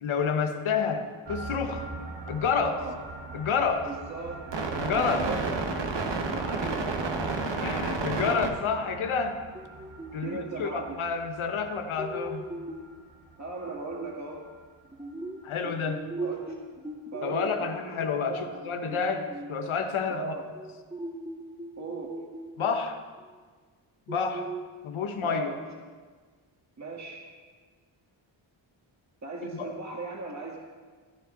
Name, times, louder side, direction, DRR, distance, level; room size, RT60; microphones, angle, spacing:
voice 1, 0.0-1.9 2.3-2.7 3.3-3.9 4.8-5.3 6.6-6.7 7.6-9.4 10.1-12.5 15.4-16.1 17.2-20.3 22.6-23.0 24.1-24.5 24.8-25.5 29.4-29.7, left 6 dB, 80° left, 6 dB, 1.2 m, -29 dB
sound 1, 1.3-13.0 13.3-13.4 13.6-13.9 14.3-14.5, right 3 dB, 60° right, 1.5 m, -34 dB
voice 2, 2.5-2.9 3.8-4.4 4.7-5.7 6.3-6.9 8.2-8.4 10.2-11.0 13.4-14.4 16.2-16.6 17.1-18.5 20.1-20.4 21.8-22.1 25.2-25.6 26.8-27.2 29.2-30.6, right 3 dB, 35° right, -1 dB, 2.0 m, -37 dB
sound 2, 9.5-10.7 12.0-13.0 14.8-17.4 18.5-19.6 20.6-22.9 23.2-23.3 24.1-24.6, right 2 dB, 10° right, 1.1 m, -39 dB
15.0 x 10.0 x 3.9 m, 1.5 s
cardioid pair, 80°, 48 cm